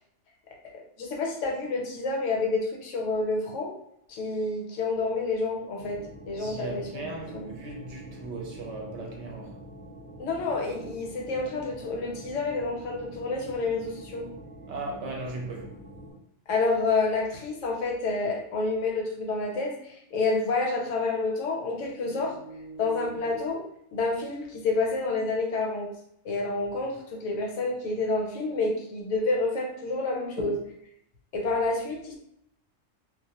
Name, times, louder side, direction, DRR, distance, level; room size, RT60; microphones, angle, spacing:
voice 1, 1.0-3.7 4.1-6.0 6.3-7.5 10.2-14.3 16.5-22.3 22.8-23.6 23.9-25.9 26.2-30.5 31.3-32.1, left 3 dB, 75° left, 0.9 m, -29 dB
sound 1, 5.8-16.1, right 1 dB, 20° right, 0.4 m, -46 dB
voice 2, 6.4-9.5 14.7-15.8 22.1-23.1 30.4-30.5, right 2 dB, 65° right, 0.8 m, -38 dB
2.3 x 2.0 x 2.7 m
omnidirectional pair, 1.3 m